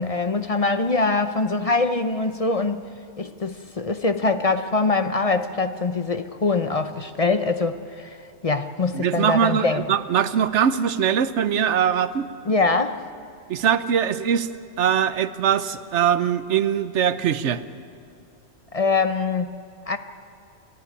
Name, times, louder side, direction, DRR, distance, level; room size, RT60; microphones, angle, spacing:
voice 1, 0.0-2.8 3.2-8.2 8.4-9.8 12.5-13.0 18.7-19.5 19.9-20.0, left 3 dB, 35° left, 9 dB, 0.7 m, -23 dB
voice 2, 8.9-12.3 13.5-14.5 14.8-17.6, right 8 dB, 75° right, 13 dB, 1.1 m, -22 dB
28.5 x 11.0 x 9.7 m, 2.6 s
omnidirectional pair, 1.2 m